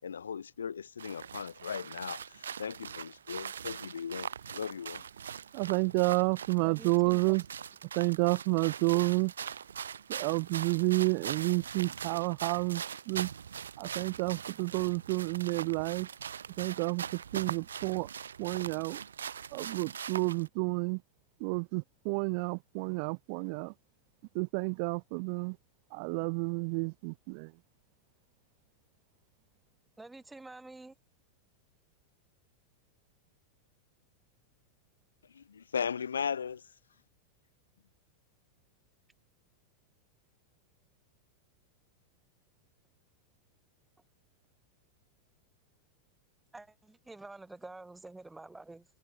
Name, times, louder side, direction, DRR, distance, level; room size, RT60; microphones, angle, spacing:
voice 1, 0.0-5.0 35.2-36.7, left 7 dB, 70° left, 5.1 m, -37 dB
sound 1, 1.0-20.5, right 7 dB, 70° right, 1.2 m, -42 dB
voice 2, 5.5-7.4 8.0-9.3 10.1-13.3 13.8-16.1 16.6-17.0 17.3-18.1 18.4-19.0 19.5-21.0 21.4-23.7 24.3-25.6 25.9-27.5, right 35 dB, 45° right, 0.7 m, -30 dB
voice 3, 6.6-7.4 30.0-30.9 46.5-48.9, right 2 dB, 10° right, 4.8 m, -48 dB
figure-of-eight pair, 90°, 0 cm